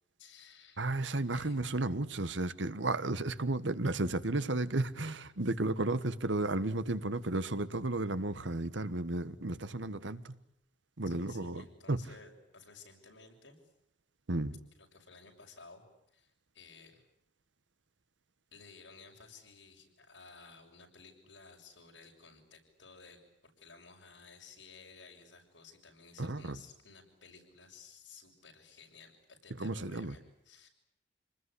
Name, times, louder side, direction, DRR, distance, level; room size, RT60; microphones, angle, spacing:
voice 1, 0.2-0.9 1.3-1.6 11.1-13.6 14.8-15.8 16.1-17.0 18.5-30.2 30.5-30.7, left 4 dB, 85° left, 1 dB, 6.7 m, -56 dB
voice 2, 0.8-10.3 11.0-12.0 14.3-14.6 26.2-26.6 29.6-30.2, right 2 dB, 80° right, 13 dB, 1.4 m, -33 dB
27.5 x 20.0 x 10.0 m, 0.80 s
head